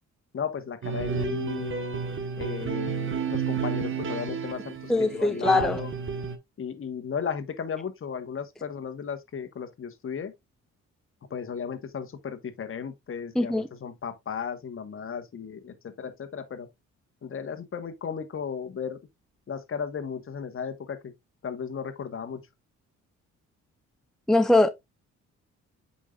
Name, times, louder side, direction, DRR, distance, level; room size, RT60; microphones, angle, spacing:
voice 1, 0.3-2.0 2.4-5.9 6.6-10.3 11.3-16.7 17.2-19.0 19.5-21.1 21.4-22.4, left 7 dB, 45° left, 1.4 m, -35 dB
sound 1, 0.8-6.4, right 6 dB, 45° right, 1.3 m, -31 dB
voice 2, 4.9-5.8 13.4-13.7 24.3-24.7, left 2 dB, ahead, 0.6 m, -21 dB
8.3 x 5.5 x 2.4 m
cardioid pair, 90°, 30 cm